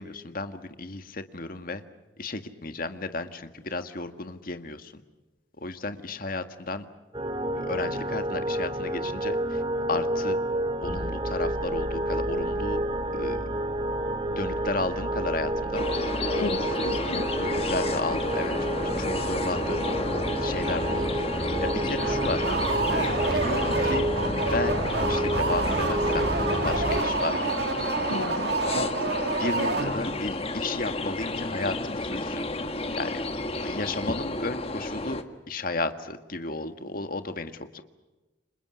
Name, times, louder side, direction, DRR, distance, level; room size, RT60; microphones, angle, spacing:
voice 1, 0.0-1.8 2.2-5.0 5.6-6.9 7.6-9.6 9.9-10.4 10.8-12.8 13.1-13.5 14.4-16.9 17.3-19.9 20.4-22.4 22.9-24.1 24.5-27.4 28.6-28.9 29.4-32.4 32.9-33.2 33.6-37.8, left 3 dB, 50° left, 8 dB, 1.8 m, -33 dB
sound 1, 7.1-27.0, right 1 dB, 25° right, 2.1 m, -29 dB
sound 2, 15.7-35.2, left 2 dB, 30° left, 1.6 m, -31 dB
voice 2, 16.4-17.3 28.1-28.6, left 3 dB, 75° left, 9 dB, 1.0 m, -34 dB
sound 3, 22.0-30.3, right 3 dB, 60° right, 2.0 m, -29 dB
29.5 x 26.0 x 6.3 m, 1.1 s
head